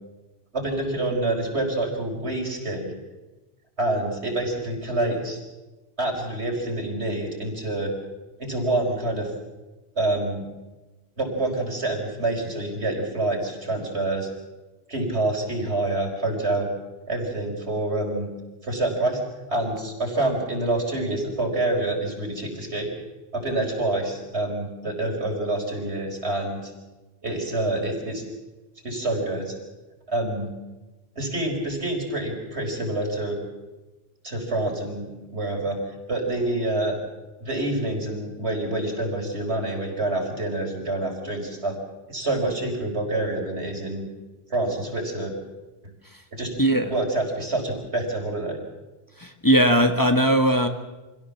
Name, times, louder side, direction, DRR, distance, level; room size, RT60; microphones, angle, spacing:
voice 1, 0.5-2.9 3.8-5.4 6.0-7.9 8.4-9.3 9.9-10.4 11.2-14.3 14.9-16.7 17.1-18.3 18.6-19.2 19.5-22.9 23.3-26.7 27.2-28.2 28.8-29.6 30.1-30.5 31.1-33.4 34.2-35.8 36.1-37.0 37.4-41.8 42.1-44.1 44.5-45.3 46.3-46.5 46.9-48.6, right 2 dB, 85° right, 0 dB, 5.1 m, -27 dB
voice 2, 46.6-46.9 49.2-50.7, equal, 20° left, 5 dB, 1.5 m, -19 dB
25.5 x 16.5 x 7.3 m, 1.1 s
omnidirectional pair, 1.1 m